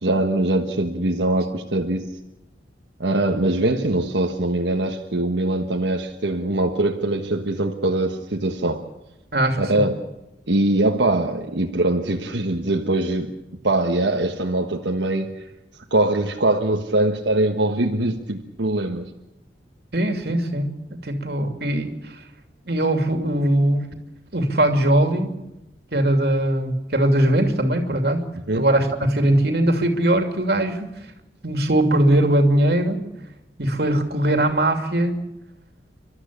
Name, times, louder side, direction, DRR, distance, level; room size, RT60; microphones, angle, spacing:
voice 1, 0.0-2.1 3.0-8.8 9.6-10.0 10.5-13.3 13.6-15.4 15.9-19.1 28.5-28.7, right 2 dB, 85° right, 2 dB, 1.4 m, -22 dB
voice 2, 9.3-9.8 19.9-20.7 21.0-21.9 22.7-23.9 24.3-25.3 25.9-28.2 28.5-30.9 31.4-33.0 33.6-35.2, right 1 dB, 60° right, 5 dB, 2.8 m, -20 dB
29.5 x 13.0 x 8.6 m, 0.93 s
head